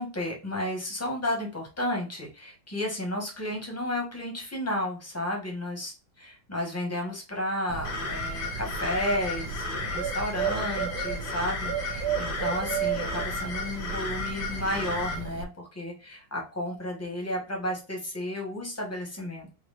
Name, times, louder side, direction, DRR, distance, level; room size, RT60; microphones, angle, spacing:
voice 1, 0.0-19.5, left 1 dB, 10° left, 0 dB, 1.0 m, -32 dB
Bird, 7.7-15.4, right 7 dB, 75° right, 0.9 m, -34 dB
sound 1, 7.8-15.2, left 3 dB, 65° left, 1.9 m, -34 dB
4.8 x 2.9 x 2.5 m, 0.32 s
omnidirectional pair, 2.3 m